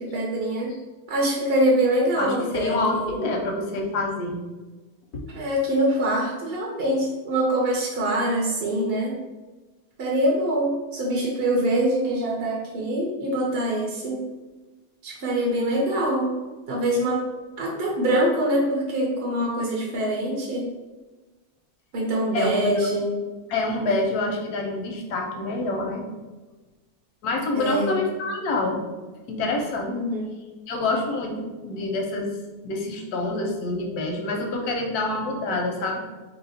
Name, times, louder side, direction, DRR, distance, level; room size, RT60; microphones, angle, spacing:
voice 1, 0.1-0.7 1.1-2.8 3.0-3.2 5.3-9.2 10.0-14.2 15.0-16.3 16.7-17.2 17.6-20.7 21.9-23.1 27.5-28.0 29.9-30.3, right 1 dB, 55° right, -2 dB, 0.7 m, -24 dB
voice 2, 2.2-4.4 5.1-5.2 22.3-22.6 23.5-26.0 27.2-28.9 29.3-29.9 30.7-32.4 32.6-36.0, left 2 dB, 90° left, 1 dB, 1.2 m, -27 dB
2.9 x 2.9 x 4.1 m, 1.2 s
omnidirectional pair, 1.6 m